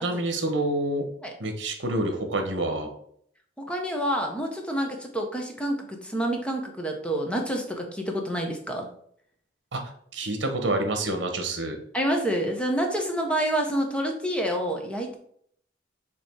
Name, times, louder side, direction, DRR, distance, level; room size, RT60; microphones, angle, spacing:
voice 1, 0.0-1.0 1.4-2.9 9.7-9.8 10.1-11.8, right 2 dB, 65° right, 5 dB, 1.2 m, -27 dB
voice 2, 3.7-8.9 11.9-15.2, right 1 dB, 5° left, 2 dB, 0.9 m, -28 dB
6.8 x 3.0 x 4.6 m, 0.64 s
head